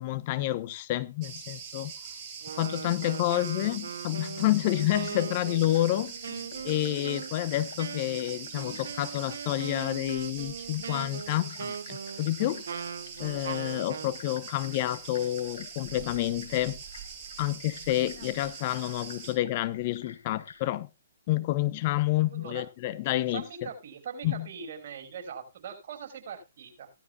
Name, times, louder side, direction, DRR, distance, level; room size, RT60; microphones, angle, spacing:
voice 1, 0.0-1.9 2.6-6.1 6.6-12.9 13.2-16.8 17.4-20.9 21.3-23.7 24.2-24.5, left 15 dB, 40° left, 0.8 m, -29 dB
Cricket, 1.2-19.3, right 6 dB, 30° right, 5.0 m, -43 dB
Wind instrument woodwind instrument, 2.4-14.2, right 6 dB, 70° right, 0.9 m, -40 dB
sound 1, 4.5-20.7, left 6 dB, 65° left, 1.8 m, -52 dB
voice 2, 22.3-22.7 23.3-26.9, right 6 dB, 55° right, 5.4 m, -41 dB
17.0 x 12.0 x 2.3 m
hypercardioid pair, 135°, 0 cm